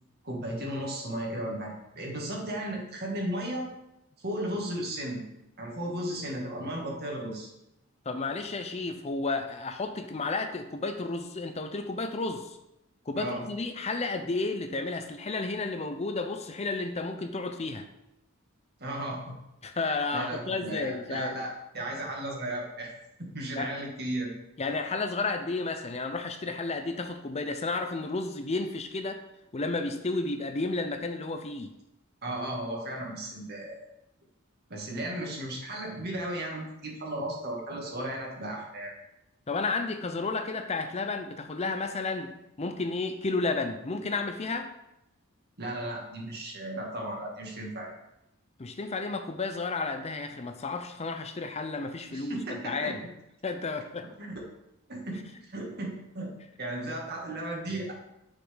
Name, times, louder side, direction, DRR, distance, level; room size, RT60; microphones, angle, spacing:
voice 1, 0.2-3.7 4.2-5.2 5.6-7.5 13.2-13.4 18.8-19.3 20.1-22.9 23.3-24.3 32.2-33.8 34.7-38.9 45.6-47.9 52.1-53.0 54.2-54.3 54.9-55.3 55.5-56.3 56.6-57.9, right 1 dB, 50° right, -1 dB, 2.3 m, -35 dB
voice 2, 8.1-12.6 13.1-17.9 19.6-21.4 23.6-23.7 24.6-29.2 29.5-31.7 39.5-44.7 48.6-53.0 53.4-54.1, left 3 dB, 30° left, 7 dB, 0.6 m, -32 dB
10.0 x 6.2 x 4.0 m, 0.88 s
head